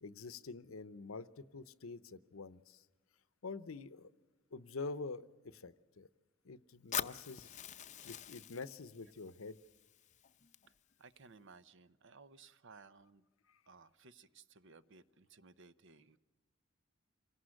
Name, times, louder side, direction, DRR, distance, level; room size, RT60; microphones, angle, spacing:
voice 1, 0.0-2.9 3.4-4.1 4.5-6.1 6.4-7.6 8.0-9.6 13.5-13.6, left 3 dB, 75° left, 15 dB, 0.7 m, -46 dB
Fire, 6.9-10.9, left 9 dB, 35° left, 0.6 m, -44 dB
voice 2, 11.0-13.3 13.7-16.2, right 4 dB, 65° right, 15 dB, 0.8 m, -59 dB
27.0 x 18.0 x 6.4 m, 1.3 s
head